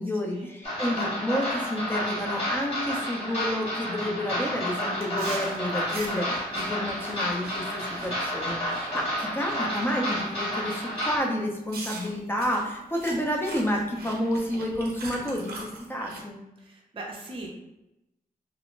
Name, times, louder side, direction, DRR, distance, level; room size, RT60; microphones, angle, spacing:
voice 1, 0.0-16.4, left 1 dB, 15° left, 0 dB, 0.6 m, -30 dB
sound 1, 0.6-11.2, equal, 40° left, 1.3 m, -30 dB
Chewing mastication, 5.0-9.8 10.2-10.5 11.0-11.1 11.7-16.2, right 2 dB, 85° right, 0.5 m, -42 dB
voice 2, 16.6-17.5, right 2 dB, 35° right, -2 dB, 0.6 m, -40 dB
2.5 x 2.1 x 3.0 m, 0.92 s
cardioid pair, 75°, 16 cm